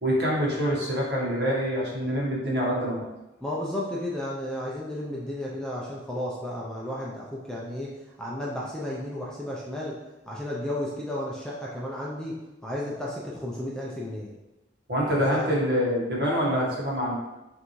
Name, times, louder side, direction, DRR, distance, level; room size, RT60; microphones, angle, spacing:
voice 1, 0.0-3.0 14.9-17.2, equal, 60° right, -5 dB, 1.4 m, -25 dB
voice 2, 3.4-10.0 10.3-12.3 12.6-14.3 15.3-15.5, left 1 dB, 5° left, -4 dB, 0.5 m, -33 dB
5.6 x 2.7 x 3.1 m, 1.0 s
head